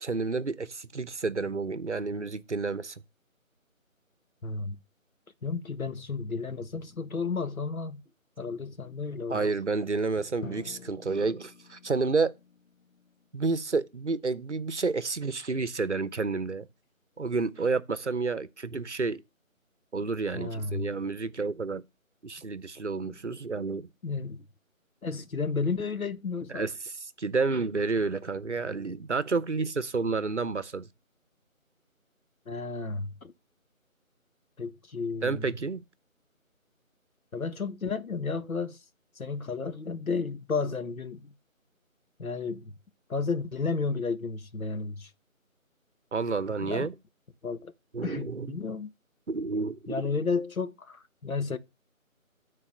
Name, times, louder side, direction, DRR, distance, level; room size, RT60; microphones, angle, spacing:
voice 1, 0.0-3.0 9.3-12.3 13.3-16.7 17.2-19.2 19.9-21.8 22.2-23.9 26.5-26.9 27.2-30.9 35.2-35.8 46.1-46.9 47.9-48.7 49.3-49.8, right 4 dB, 55° right, 0.8 m, -30 dB
voice 2, 4.4-4.8 5.4-8.0 8.4-9.4 20.3-20.9 23.0-23.4 24.0-24.5 25.0-26.7 32.5-33.3 34.6-35.5 37.3-38.8 39.2-41.3 42.2-42.7 43.1-45.1 46.6-46.9 47.4-47.7 48.0-48.9 49.9-51.6, left 4 dB, 80° left, 1.1 m, -32 dB
Drum, 10.4-14.2, left 3 dB, 65° left, 0.9 m, -48 dB
9.1 x 4.1 x 5.0 m
figure-of-eight pair, 175°, 42 cm